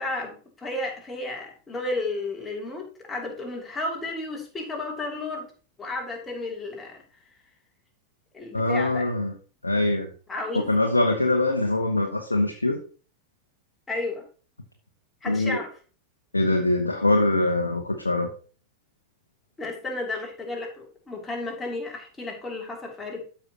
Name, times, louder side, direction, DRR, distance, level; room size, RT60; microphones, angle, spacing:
voice 1, 0.0-5.5 5.8-7.0 8.3-9.1 10.3-10.7 13.9-14.2 15.2-15.7 19.6-23.2, left 2 dB, 15° left, 0 dB, 2.8 m, -33 dB
voice 2, 8.5-9.3 9.6-10.1 10.7-12.8 15.3-15.6 16.3-18.3, left 2 dB, 80° left, 2 dB, 1.0 m, -23 dB
13.0 x 5.5 x 2.9 m, 0.38 s
figure-of-eight pair, 90°, 0 cm